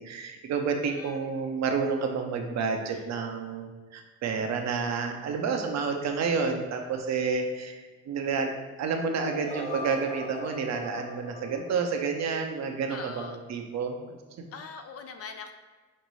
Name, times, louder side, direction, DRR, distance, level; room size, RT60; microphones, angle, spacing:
voice 1, 0.0-8.5 8.8-14.2, right 5 dB, 60° right, 4 dB, 0.6 m, -30 dB
voice 2, 0.8-1.2 2.9-3.1 12.9-13.4 14.5-15.5, left 5 dB, 50° left, 7 dB, 0.5 m, -42 dB
sound 1, 9.1-13.0, equal, 25° left, 0.8 m, -40 dB
5.3 x 2.6 x 3.1 m, 1.3 s
cardioid pair, 90°, 30 cm